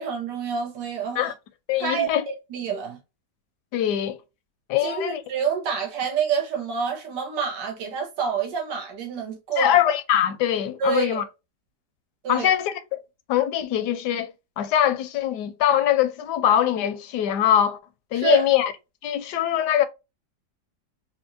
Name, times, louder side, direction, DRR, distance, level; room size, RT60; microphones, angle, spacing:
voice 1, 0.0-1.3 1.8-3.0 4.8-9.7 10.8-11.2 12.2-12.5 18.1-18.5, right 6 dB, 85° right, 1.7 m, -27 dB
voice 2, 1.7-2.2 3.7-4.2 4.7-5.2 9.6-11.2 12.3-13.0 13.3-17.8 18.1-18.7 19.0-19.9, left 10 dB, 75° left, 1.1 m, -22 dB
4.3 x 2.7 x 2.5 m
omnidirectional pair, 1.9 m